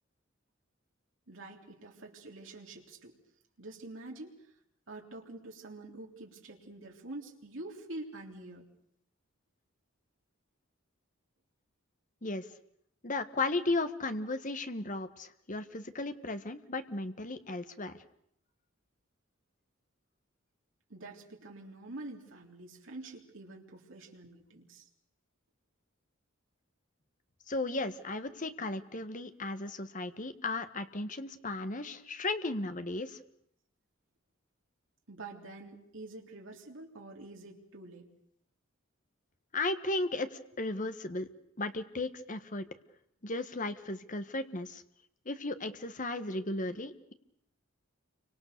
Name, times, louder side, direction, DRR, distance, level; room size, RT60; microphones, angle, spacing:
voice 1, 1.3-3.2 3.6-4.4 4.9-8.7 20.9-24.9 35.1-38.1, right 2 dB, 70° right, 0 dB, 3.5 m, -46 dB
voice 2, 13.0-18.0 27.5-33.2 39.5-41.3 41.6-42.7 43.2-44.8 45.2-47.1, left 2 dB, 40° left, 10 dB, 1.5 m, -35 dB
29.5 x 25.0 x 6.8 m, 0.70 s
head